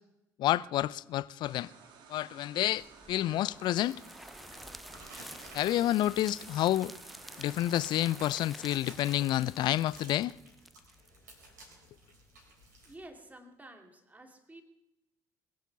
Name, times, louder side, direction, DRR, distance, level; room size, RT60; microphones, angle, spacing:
voice 1, 0.4-1.7 2.1-4.0 5.5-6.9 7.4-10.3, left 14 dB, 50° left, 0.5 m, -29 dB
sound 1, 1.4-8.2, right 6 dB, 55° right, 2.3 m, -55 dB
sound 2, 2.7-11.6, equal, ahead, 0.7 m, -50 dB
sound 3, 4.5-12.9, right 2 dB, 80° right, 4.0 m, -55 dB
voice 2, 12.8-14.6, right 1 dB, 15° right, 2.5 m, -51 dB
22.0 x 8.2 x 6.7 m
figure-of-eight pair, 50°, 10 cm